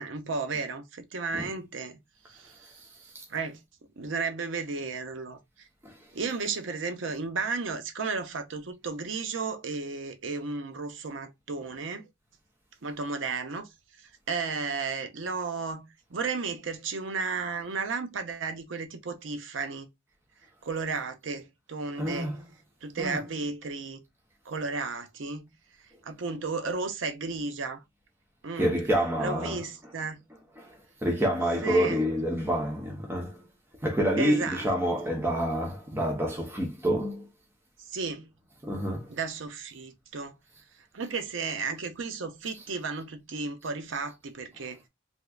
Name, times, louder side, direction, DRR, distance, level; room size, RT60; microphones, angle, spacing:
voice 1, 0.0-2.0 2.3-2.9 3.3-3.6 4.0-5.4 6.1-12.1 12.8-13.7 14.3-19.9 20.6-22.3 22.8-24.0 24.5-25.5 26.0-27.8 28.4-28.8 29.2-30.2 31.6-32.0 34.2-34.7 37.9-38.3 39.1-40.4 40.9-44.8, right 4 dB, 80° right, 0.6 m, -33 dB
voice 2, 22.0-22.5 23.0-23.2 28.5-29.9 30.6-30.7 31.0-33.4 33.8-37.2 38.6-39.1 42.5-42.7, equal, 10° right, 0.7 m, -28 dB
3.5 x 3.0 x 2.2 m
head